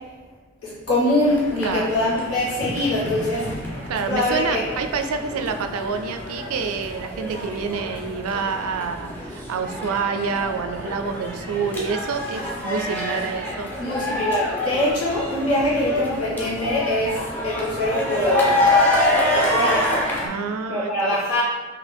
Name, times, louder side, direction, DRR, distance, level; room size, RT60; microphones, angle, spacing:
voice 1, 0.6-3.5 4.1-4.6 13.8-18.6 19.3-19.9 20.7-21.4, left 1 dB, 90° left, -7 dB, 1.4 m, -23 dB
sound 1, 1.2-20.3, left 1 dB, 10° left, 0.5 m, -26 dB
voice 2, 1.6-2.0 3.9-13.7 20.2-21.2, right 5 dB, 85° right, 7 dB, 0.4 m, -27 dB
3.9 x 2.8 x 3.4 m, 1.4 s
head